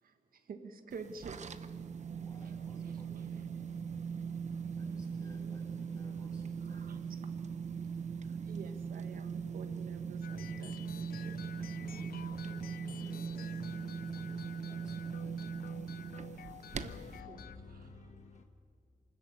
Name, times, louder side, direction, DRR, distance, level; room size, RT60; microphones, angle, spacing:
voice 1, 0.0-1.5 6.6-7.0 8.4-11.4 16.8-18.0, right 5 dB, 75° right, 1.5 m, -49 dB
sound 1, 0.9-17.2, right 6 dB, 50° right, 0.9 m, -40 dB
voice 2, 2.2-3.4 4.7-7.0 11.2-15.4, equal, 25° left, 6.9 m, -57 dB
sound 2, 10.2-17.6, left 10 dB, 85° left, 0.5 m, -50 dB
voice 3, 16.5-18.4, left 4 dB, 55° left, 1.3 m, -51 dB
24.5 x 14.0 x 9.2 m
cardioid pair, 90°, 15 cm